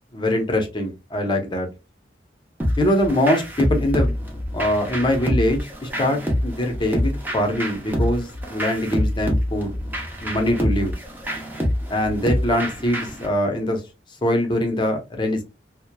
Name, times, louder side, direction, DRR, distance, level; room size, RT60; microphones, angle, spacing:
voice 1, 0.1-1.7 2.8-4.1 4.5-9.8 10.2-11.0 11.9-13.8 14.2-15.4, left 1 dB, 25° left, 0.7 m, -23 dB
sound 1, 2.6-13.3, equal, 10° right, 0.7 m, -26 dB
2.8 x 2.1 x 2.2 m
head